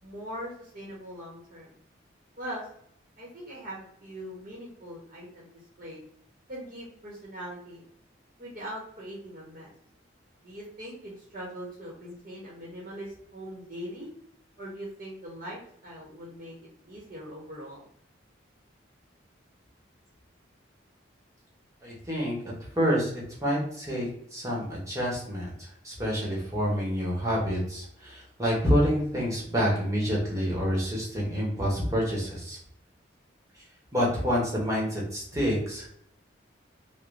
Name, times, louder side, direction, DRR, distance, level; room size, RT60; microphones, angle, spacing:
voice 1, 0.0-1.7 2.4-2.7 3.2-5.5 5.8-6.0 6.5-7.8 8.4-9.7 10.4-14.1 14.6-16.5 16.8-17.8, equal, 40° right, -5 dB, 1.0 m, -41 dB
voice 2, 21.8-32.6 33.9-35.9, equal, 15° right, -4 dB, 1.1 m, -28 dB
3.9 x 2.2 x 3.2 m, 0.68 s
head